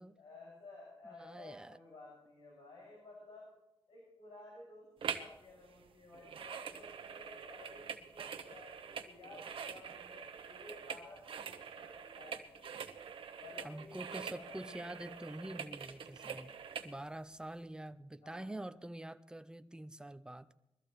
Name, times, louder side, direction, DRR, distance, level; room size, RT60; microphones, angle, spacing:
voice 1, 0.2-3.5 3.9-12.6 13.4-15.6 18.1-18.6, left 2 dB, 85° left, -4 dB, 6.3 m, -55 dB
voice 2, 1.0-1.8 13.6-16.5 16.8-20.5, right 1 dB, 10° right, 12 dB, 0.6 m, -46 dB
sound 1, 5.0-5.4 5.6-16.9 17.4-17.5, right 7 dB, 70° right, 1.1 m, -45 dB
22.0 x 14.0 x 3.1 m, 0.92 s
wide cardioid pair, 130°, 10 cm